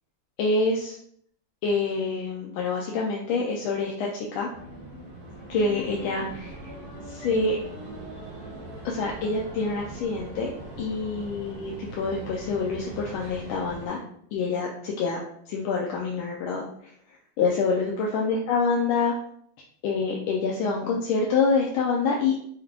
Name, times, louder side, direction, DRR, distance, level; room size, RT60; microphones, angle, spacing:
voice 1, 0.4-1.0 1.6-4.5 5.5-6.6 7.1-7.6 8.8-10.5 10.8-14.0 14.3-16.6 17.4-19.1 19.8-22.3, left 4 dB, 90° left, -2 dB, 1.5 m, -26 dB
sound 1, 4.5-13.9, right 1 dB, 60° right, 1.1 m, -41 dB
4.9 x 2.4 x 3.3 m, 0.65 s
omnidirectional pair, 2.2 m